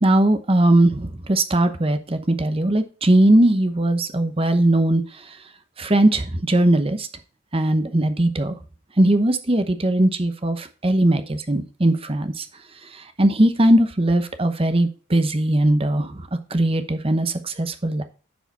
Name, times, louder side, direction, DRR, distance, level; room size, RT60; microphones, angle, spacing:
voice 1, 0.0-5.0 5.8-7.1 7.5-8.5 9.0-12.5 12.9-18.0, right 1 dB, 25° right, 9 dB, 0.9 m, -19 dB
10.5 x 4.9 x 4.1 m, 0.35 s
head